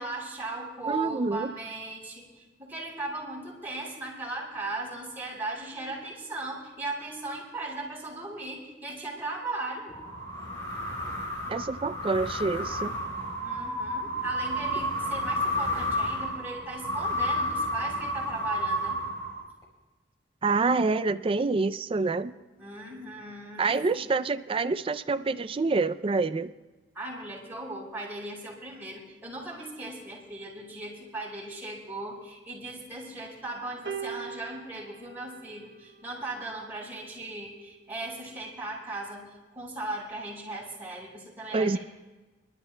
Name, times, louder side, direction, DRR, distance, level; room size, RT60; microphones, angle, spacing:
voice 1, 0.0-9.9 13.4-19.0 22.6-24.1 26.9-39.2 39.5-41.8, right 2 dB, 10° right, -5 dB, 4.9 m, -37 dB
voice 2, 0.9-1.5 11.5-13.0 20.4-22.3 23.6-26.5 41.5-41.8, right 3 dB, 30° right, 12 dB, 0.4 m, -27 dB
sound 1, 9.9-19.6, equal, 25° left, 4.3 m, -31 dB
sound 2, 33.9-36.3 37.3-37.5, right 7 dB, 65° right, 0.9 m, -41 dB
27.0 x 12.5 x 2.2 m, 1.2 s
head